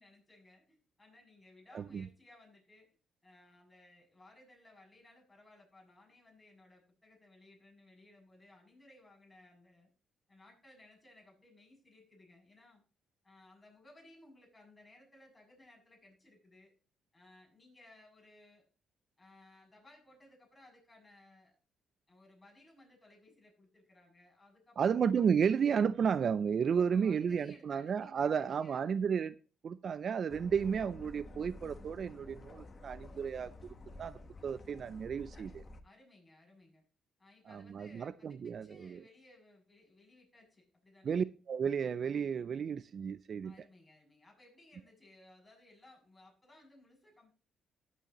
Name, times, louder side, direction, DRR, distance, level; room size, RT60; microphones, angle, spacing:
voice 1, 0.0-2.9 3.2-9.9 10.3-12.8 13.2-16.7 17.1-18.6 19.2-21.6 22.1-25.0 26.7-29.1 35.8-36.8 37.2-41.3 43.4-47.3, left 2 dB, 15° left, 7.4 m, -61 dB
voice 2, 1.7-2.1 24.8-29.4 29.6-35.6 37.5-39.0 41.0-43.5, right 7 dB, 55° right, 0.4 m, -33 dB
sound 1, 30.3-35.8, left 2 dB, 35° left, 1.2 m, -51 dB
16.0 x 8.3 x 3.0 m
cardioid pair, 90°, 0 cm